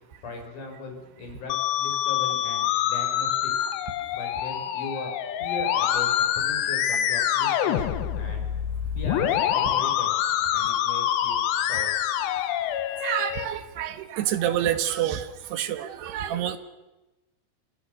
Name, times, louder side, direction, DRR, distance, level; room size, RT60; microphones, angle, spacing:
voice 1, 0.2-3.7 4.1-5.1 5.4-8.4 8.9-10.1 10.5-12.3, left 2 dB, 50° left, 2 dB, 7.2 m, -39 dB
Musical instrument, 1.5-13.5, left 10 dB, 85° left, 3.6 m, -26 dB
voice 2, 13.0-16.6, right 11 dB, 75° right, 10 dB, 3.5 m, -28 dB
29.0 x 25.5 x 6.7 m, 1.1 s
omnidirectional pair, 4.8 m